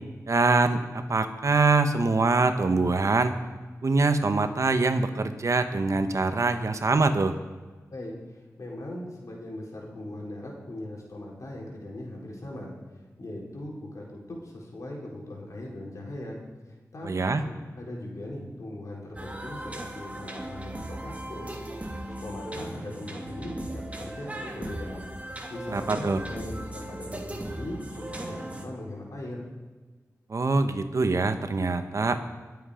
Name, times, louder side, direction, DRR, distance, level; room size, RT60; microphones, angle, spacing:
voice 1, 0.3-3.3 3.8-7.4 17.0-17.4 25.7-26.2 30.3-32.2, right 3 dB, 60° right, 8 dB, 1.2 m, -24 dB
voice 2, 7.9-16.4 16.6-25.1 25.5-29.5, left 1 dB, 65° left, -2 dB, 4.5 m, -40 dB
sound 1, 19.2-28.7, right 1 dB, 25° right, 2.2 m, -38 dB
23.0 x 8.2 x 5.1 m, 1.3 s
cardioid pair, 55°, 6 cm